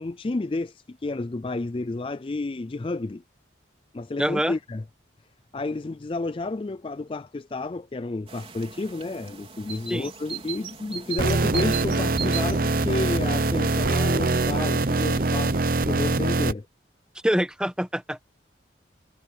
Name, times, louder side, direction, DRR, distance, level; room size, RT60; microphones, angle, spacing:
voice 1, 0.0-3.2 3.9-4.8 5.5-16.7, left 2 dB, 30° left, 0.4 m, -31 dB
voice 2, 4.2-4.5 9.9-10.1 17.2-18.2, equal, 5° right, 1.2 m, -25 dB
sound 1, 8.3-15.7, right 7 dB, 30° right, 4.2 m, -39 dB
sound 2, 11.2-16.5, right 3 dB, 50° right, 0.8 m, -23 dB
head